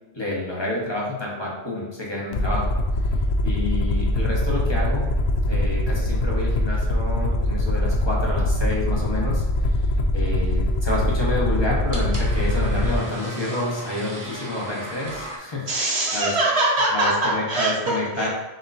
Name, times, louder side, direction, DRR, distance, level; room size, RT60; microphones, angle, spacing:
voice 1, 0.1-2.7 3.0-3.1 3.4-5.1 5.5-15.7 16.1-16.3 16.9-18.3, left 2 dB, 25° left, -4 dB, 1.1 m, -29 dB
Aircraft, 2.3-13.0, left 1 dB, 55° left, 0.5 m, -23 dB
sound 1, 10.1-15.4, left 1 dB, 20° right, 0.7 m, -36 dB
voice 2, 15.7-18.3, right 2 dB, 75° right, -3 dB, 1.4 m, -23 dB
6.4 x 2.9 x 2.6 m, 1.1 s
omnidirectional pair, 1.1 m